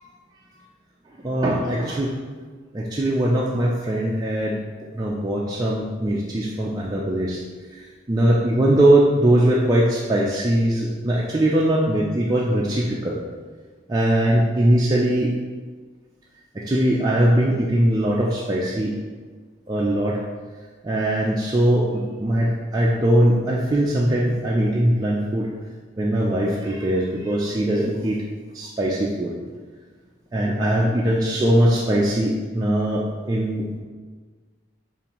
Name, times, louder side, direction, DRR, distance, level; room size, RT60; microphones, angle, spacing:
voice 1, 1.2-2.2 2.7-4.6 4.9-7.4 7.7-13.2 13.9-15.3 16.5-19.0 19.7-20.2 20.8-25.5 26.0-28.2 28.5-29.3 30.3-33.8, right 1 dB, 20° right, -4 dB, 0.3 m, -21 dB
7.0 x 2.6 x 2.9 m, 1.5 s
head